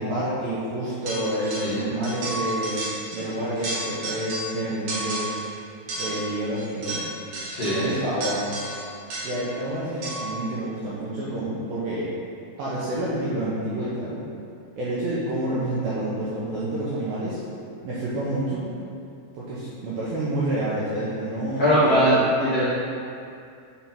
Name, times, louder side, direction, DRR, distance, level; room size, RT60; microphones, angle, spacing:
voice 1, 0.0-2.9 3.1-5.3 6.0-7.0 7.7-8.5 9.2-12.1 12.6-14.2 14.8-17.4 17.8-18.7 19.3-22.0, right 1 dB, 75° right, -9 dB, 2.2 m, -28 dB
sound 1, 1.1-1.8 2.0-3.3 3.5-4.6 4.9-5.5 5.9-9.5 10.0-10.4, right 1 dB, 55° right, 2.2 m, -32 dB
voice 2, 7.5-7.9 21.6-22.6, equal, 75° left, -12 dB, 1.4 m, -20 dB
9.7 x 3.5 x 4.4 m, 2.5 s
omnidirectional pair, 5.4 m